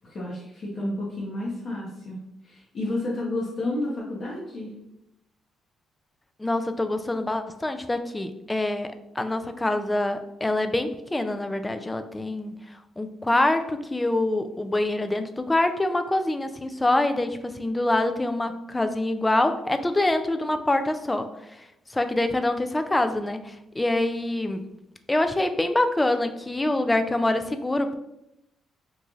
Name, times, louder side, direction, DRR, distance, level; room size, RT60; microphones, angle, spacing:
voice 1, 0.1-4.7, left 1 dB, 50° left, -5 dB, 0.9 m, -31 dB
voice 2, 6.4-12.6 13.0-21.6 21.9-24.7 25.1-27.9, left 2 dB, 15° left, 8 dB, 0.3 m, -25 dB
3.1 x 2.4 x 3.7 m, 0.85 s
cardioid pair, 90°, 0 cm